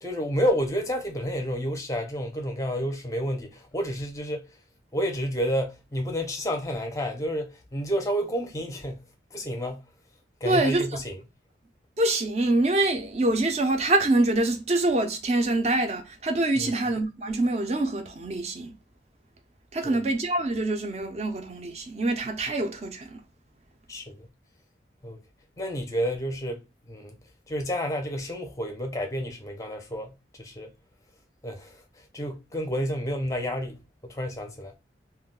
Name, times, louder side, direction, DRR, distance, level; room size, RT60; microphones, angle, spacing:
voice 1, 0.0-4.5 4.9-9.1 9.3-9.9 10.4-11.2 16.6-16.7 19.8-20.0 23.9-24.3 25.0-25.2 25.6-27.2 27.5-30.7 31.4-31.8 32.1-34.8, equal, 15° left, 0.5 m, -30 dB
voice 2, 10.4-10.9 12.0-18.7 19.7-23.2, right 2 dB, 35° right, 0.5 m, -25 dB
2.2 x 2.1 x 3.6 m
head